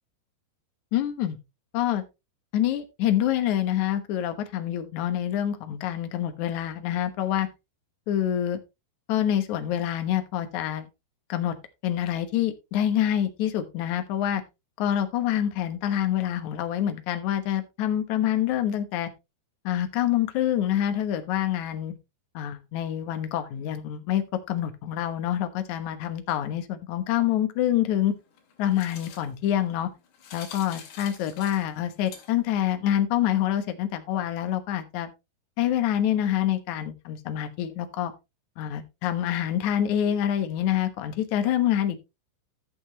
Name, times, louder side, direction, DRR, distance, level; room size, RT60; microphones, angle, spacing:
voice 1, 0.9-1.4 1.7-2.0 2.5-7.5 8.1-8.6 9.1-10.9 11.3-11.5 11.8-14.4 14.8-19.1 19.6-21.9 22.3-28.1 28.6-29.9 30.3-35.1 35.6-38.1 38.6-42.0, left 11 dB, 65° left, 9 dB, 1.9 m, -26 dB
sound 1, 27.9-32.6, left 7 dB, 85° left, 4.7 m, -47 dB
14.5 x 7.1 x 2.9 m, 0.24 s
omnidirectional pair, 4.9 m